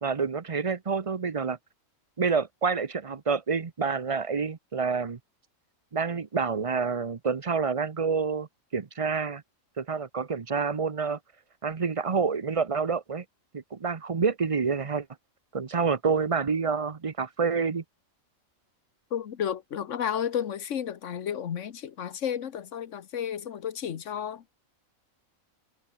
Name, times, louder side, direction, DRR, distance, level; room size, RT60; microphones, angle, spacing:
voice 1, 0.0-1.6 2.2-5.2 5.9-8.5 8.7-9.4 9.8-11.2 11.6-13.2 13.5-15.1 15.5-17.8, right 5 dB, 30° right, 0.7 m, -28 dB
voice 2, 19.1-24.4, left 9 dB, 60° left, 1.4 m, -32 dB
omnidirectional pair, 1.4 m